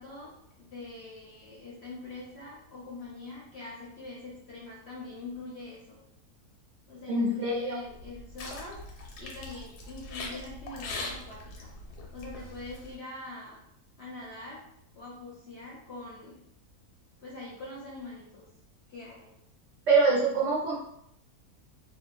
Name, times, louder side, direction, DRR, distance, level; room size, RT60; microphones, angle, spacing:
voice 1, 0.0-6.0 6.9-11.7 12.1-13.6 14.0-14.7 15.0-16.3 17.2-18.4 18.9-19.3, left 2 dB, 60° left, -4 dB, 0.7 m, -43 dB
voice 2, 7.1-7.7 19.9-20.7, right 3 dB, 65° right, -4 dB, 0.8 m, -24 dB
sound 1, 7.9-12.9, left 2 dB, 85° left, 1.2 m, -41 dB
2.6 x 2.2 x 3.0 m, 0.75 s
omnidirectional pair, 1.6 m